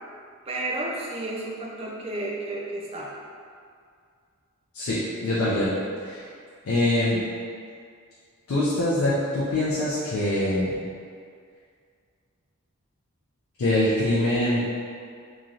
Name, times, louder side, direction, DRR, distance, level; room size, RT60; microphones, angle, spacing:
voice 1, 0.5-3.1, right 2 dB, 25° right, -3 dB, 0.3 m, -32 dB
voice 2, 4.7-5.7 6.0-6.2 6.7-7.2 8.5-10.7 13.6-14.6, left 1 dB, 70° left, -8 dB, 0.4 m, -24 dB
3.0 x 2.6 x 2.4 m, 2.2 s
head